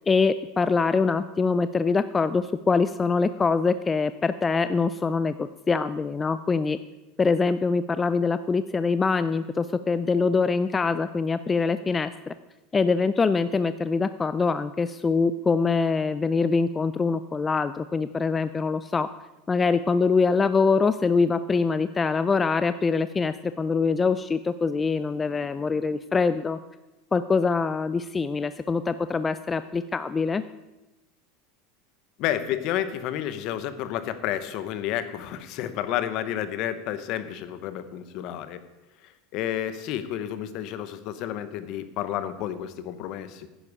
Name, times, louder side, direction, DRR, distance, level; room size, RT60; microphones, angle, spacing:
voice 1, 0.1-6.8 7.2-12.3 12.7-19.1 19.5-26.6 27.1-30.4, left 4 dB, 20° left, 13 dB, 0.3 m, -24 dB
voice 2, 32.2-38.6 39.3-43.5, left 11 dB, 55° left, 12 dB, 0.9 m, -30 dB
10.0 x 9.8 x 4.8 m, 1.0 s
supercardioid pair, 120°, 0 cm